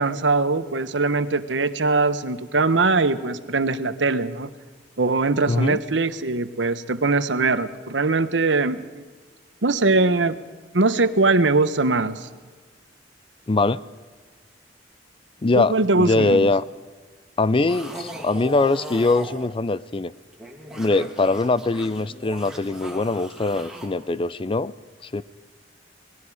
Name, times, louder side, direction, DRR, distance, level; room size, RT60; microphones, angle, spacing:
voice 1, 0.0-4.5 5.0-9.1 9.6-10.4 10.7-12.3 15.6-16.5, right 3 dB, 85° right, 12 dB, 1.1 m, -21 dB
voice 2, 5.5-5.8 13.5-13.8 15.4-16.6 17.4-20.1 20.7-24.7 25.0-25.2, left 3 dB, 30° left, 17 dB, 0.5 m, -22 dB
sound 1, 17.7-19.5 20.2-23.9, equal, 5° right, 2.9 m, -38 dB
27.0 x 20.0 x 4.9 m, 1.4 s
head